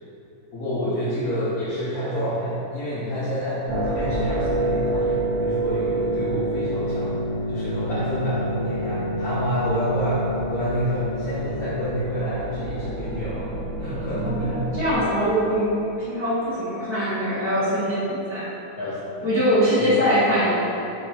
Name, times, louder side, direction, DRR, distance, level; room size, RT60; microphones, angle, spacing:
voice 1, 0.5-7.2 7.5-10.2 10.5-13.5 13.8-14.8 18.8-19.3 19.8-19.9, equal, 60° left, -11 dB, 2.0 m, -28 dB
sound 1, 3.7-14.9, right 1 dB, 50° right, 1.5 m, -27 dB
voice 2, 14.1-15.7 16.1-18.5 19.2-20.5, equal, 10° right, -12 dB, 1.4 m, -22 dB
6.3 x 5.4 x 4.6 m, 2.9 s
omnidirectional pair, 1.7 m